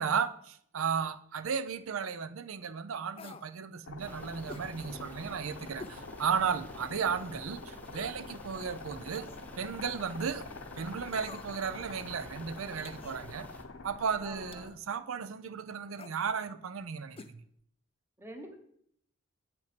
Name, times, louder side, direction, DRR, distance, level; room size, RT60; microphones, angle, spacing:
voice 1, 0.0-9.3 9.6-10.5 10.8-13.5 13.8-17.4, right 6 dB, 75° right, 0.5 m, -34 dB
sound 1, 3.2-3.5 4.5-4.7 5.8-6.0 6.5-6.6 7.8-8.2 9.1-9.5 11.1-11.7 12.8-13.2 14.5-14.8 15.9-16.2 17.1-17.3 17.6-17.7, left 4 dB, 25° left, 0.3 m, -48 dB
sound 2, 3.8-14.7, left 3 dB, 70° left, 0.8 m, -46 dB
sound 3, 4.0-13.6, left 1 dB, 10° left, 0.7 m, -51 dB
voice 2, 14.2-14.7 18.2-18.6, equal, 10° right, 1.0 m, -46 dB
7.8 x 5.6 x 5.1 m
head